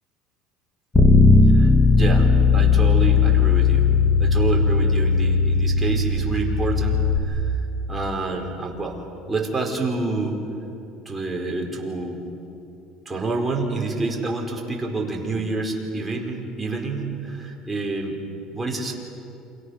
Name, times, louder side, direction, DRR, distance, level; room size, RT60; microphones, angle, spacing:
Bass guitar, 0.9-7.2, left 4 dB, 15° left, 3.3 m, -17 dB
voice 1, 1.5-3.9 4.2-7.4 7.9-9.0 9.3-10.4 11.0-12.2 13.0-18.2 18.5-18.9, right 3 dB, 15° right, 1 dB, 4.7 m, -28 dB
29.0 x 27.5 x 6.6 m, 2.9 s
supercardioid pair, 120°, 0 cm